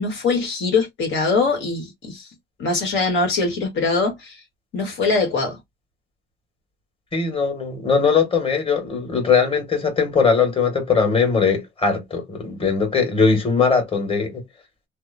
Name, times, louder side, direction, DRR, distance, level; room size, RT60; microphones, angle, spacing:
voice 1, 0.0-2.3 2.6-4.4 4.7-5.6, left 4 dB, 70° left, 1.2 m, -22 dB
voice 2, 7.1-14.4, left 5 dB, 25° left, 1.5 m, -20 dB
2.7 x 2.0 x 2.4 m
cardioid pair, 90°, 20 cm